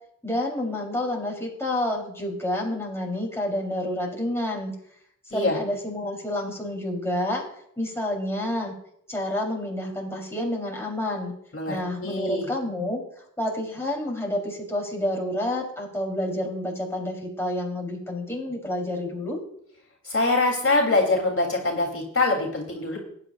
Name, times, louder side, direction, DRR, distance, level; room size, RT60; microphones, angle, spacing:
voice 1, 0.2-4.7 5.3-7.4 7.8-8.7 9.1-11.3 11.7-13.0 13.4-19.4, left 1 dB, 10° left, -1 dB, 3.6 m, -29 dB
voice 2, 12.0-12.5 20.0-23.0, left 2 dB, 45° left, -1 dB, 3.2 m, -23 dB
19.5 x 9.9 x 2.5 m, 0.69 s
wide cardioid pair, 85°, 31 cm